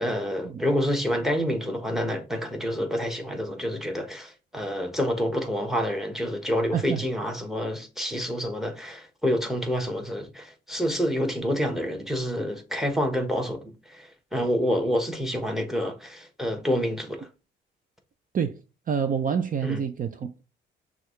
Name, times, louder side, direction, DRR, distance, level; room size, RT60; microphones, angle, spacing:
voice 1, 0.0-17.3 19.6-19.8, equal, ahead, 1.2 m, -28 dB
voice 2, 6.7-7.0 18.3-18.6 18.9-20.4, right 7 dB, 45° right, 0.5 m, -27 dB
6.2 x 2.4 x 3.2 m
cardioid pair, 90°, 20 cm